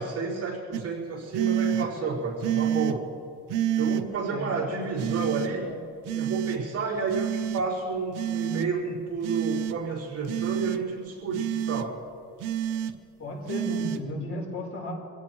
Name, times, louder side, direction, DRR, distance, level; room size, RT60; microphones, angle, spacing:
voice 1, 0.0-3.1 3.8-5.7 6.1-12.0, right 4 dB, 50° right, -5 dB, 4.7 m, -30 dB
sound 1, 0.7-0.8 1.3-1.9 2.4-3.0 3.5-4.0 5.0-5.5 6.1-6.6 7.1-7.6 8.1-8.7 9.2-9.8 10.3-10.8 11.3-11.9 12.4-12.9 13.5-14.0, right 10 dB, 80° right, 0.9 m, -28 dB
voice 2, 5.4-5.8 13.2-14.9, left 2 dB, 45° left, 0 dB, 3.9 m, -34 dB
25.5 x 17.0 x 3.1 m, 2.4 s
cardioid pair, 130°, 31 cm